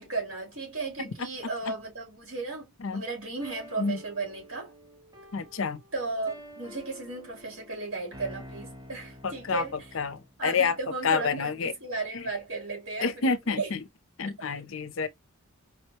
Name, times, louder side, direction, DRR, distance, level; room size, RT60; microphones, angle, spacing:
voice 1, 0.0-4.7 5.9-9.9 10.4-13.7, right 3 dB, 70° right, 2.7 m, -35 dB
sound 1, 3.4-10.4, equal, 15° right, 0.8 m, -48 dB
voice 2, 5.3-5.8 9.2-9.6 9.9-10.8 11.0-11.7 12.1-12.2 13.0-13.8 14.2-15.1, left 5 dB, 65° left, 0.6 m, -28 dB
4.9 x 2.2 x 2.8 m
head